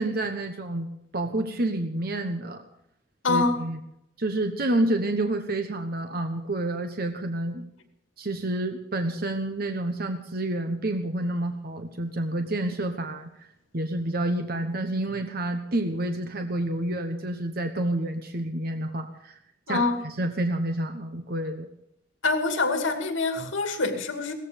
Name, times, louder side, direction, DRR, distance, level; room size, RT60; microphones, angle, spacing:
voice 1, 0.0-2.6 3.3-3.8 4.2-7.6 8.2-13.3 13.7-19.4 19.7-21.7, right 1 dB, 50° right, 6 dB, 1.1 m, -29 dB
voice 2, 3.2-3.7 19.7-20.0 22.2-24.3, left 3 dB, 80° left, 5 dB, 2.5 m, -25 dB
17.5 x 14.5 x 5.2 m, 0.78 s
head